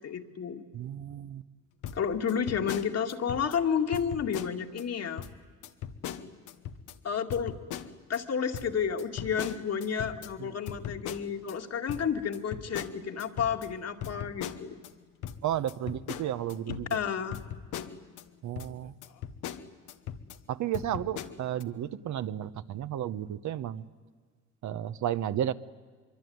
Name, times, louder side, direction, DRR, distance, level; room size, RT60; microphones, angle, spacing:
voice 1, 0.0-0.6 1.9-5.3 7.0-7.6 8.1-14.8 16.9-17.4, left 7 dB, 55° left, 5 dB, 2.1 m, -31 dB
voice 2, 0.7-1.4 10.4-10.5 15.4-17.0 18.4-18.9 20.5-23.8 24.6-25.5, right 11 dB, 70° right, 12 dB, 1.0 m, -33 dB
sound 1, 1.8-3.6 3.9-4.8 5.2-5.3 5.6-6.9 7.3-8.2 8.5-11.5 11.9-14.9 15.2-18.2 18.6-18.7 19.0-20.4 20.7-21.6, left 9 dB, 90° left, 1.2 m, -40 dB
24.5 x 23.5 x 9.5 m, 1.5 s
cardioid pair, 90°, 30 cm